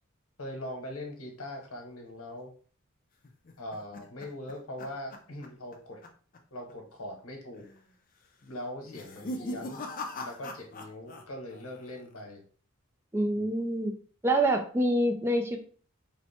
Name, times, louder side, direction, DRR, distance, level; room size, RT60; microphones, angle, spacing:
voice 1, 0.4-2.5 3.6-6.0 6.5-7.7 8.4-9.8 10.2-12.4 13.4-13.5, left 1 dB, 85° left, 1 dB, 1.3 m, -41 dB
sound 1, 3.2-5.8 6.0-6.4 6.7-6.8 7.5-7.9 8.8-11.2 11.5-12.1, left 1 dB, 40° left, 0.5 m, -41 dB
voice 2, 13.1-13.9 14.2-15.6, right 1 dB, 10° right, 3 dB, 0.4 m, -26 dB
4.2 x 2.2 x 4.2 m, 0.42 s
head